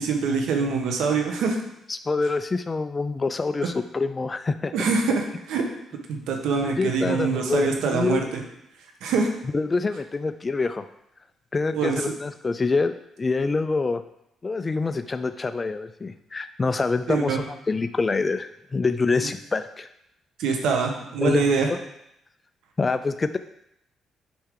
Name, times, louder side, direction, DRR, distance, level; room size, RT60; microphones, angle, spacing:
voice 1, 0.0-1.6 4.7-5.6 6.1-8.2 9.0-9.3 11.7-12.0 17.1-17.4 20.4-21.7, right 5 dB, 85° right, 3 dB, 1.2 m, -24 dB
voice 2, 1.9-4.7 6.7-8.3 9.5-10.8 11.5-14.0 14.4-19.9 21.2-21.8 22.8-23.4, left 3 dB, 30° left, 10 dB, 0.3 m, -26 dB
8.6 x 4.5 x 3.8 m, 0.81 s
cardioid pair, 90°, 0 cm